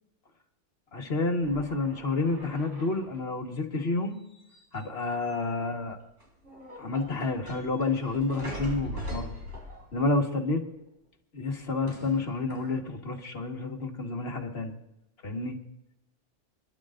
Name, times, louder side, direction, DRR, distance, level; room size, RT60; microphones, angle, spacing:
voice 1, 0.9-4.2 4.7-6.0 6.8-9.4 9.9-10.6 11.3-14.8 15.2-15.6, left 3 dB, 55° left, 1 dB, 1.9 m, -29 dB
sound 1, 1.4-3.2 4.3-5.0 5.2-5.8 6.2-10.1 11.9-12.8, equal, 75° right, 4.1 m, -42 dB
28.5 x 11.5 x 2.5 m, 0.86 s
omnidirectional pair, 1.3 m